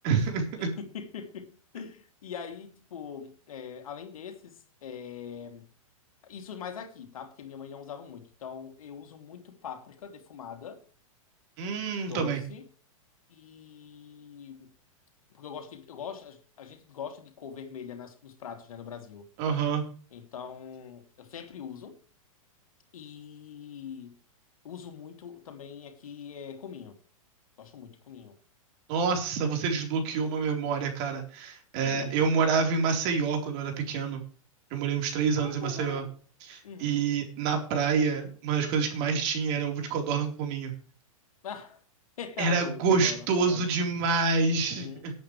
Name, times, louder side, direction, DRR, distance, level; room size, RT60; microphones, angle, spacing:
voice 1, 0.0-0.7 11.6-12.4 19.4-19.8 28.9-34.2 34.7-36.0 36.4-40.7 42.4-45.1, right 5 dB, 45° right, 4.1 m, -27 dB
voice 2, 0.6-5.7 6.2-10.8 12.0-12.6 13.3-14.7 15.3-19.3 20.1-22.0 22.9-24.2 24.6-27.0 27.6-28.4 31.8-32.2 35.4-36.1 36.6-37.1 41.4-41.8 42.2-43.7 44.4-45.0, left 7 dB, 80° left, 2.8 m, -42 dB
19.0 x 8.6 x 3.3 m
hypercardioid pair, 130°, 18 cm